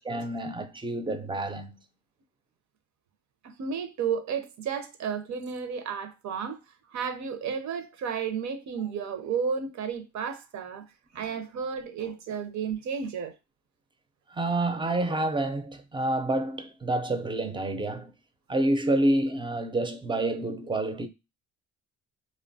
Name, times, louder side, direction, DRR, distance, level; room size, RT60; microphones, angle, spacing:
voice 1, 0.1-1.8 14.3-18.1 18.5-21.1, right 1 dB, 15° right, 0.4 m, -28 dB
voice 2, 3.4-6.6 6.9-10.9 11.1-13.4, right 6 dB, 70° right, 0.6 m, -32 dB
3.0 x 2.2 x 2.6 m
cardioid pair, 90°, 30 cm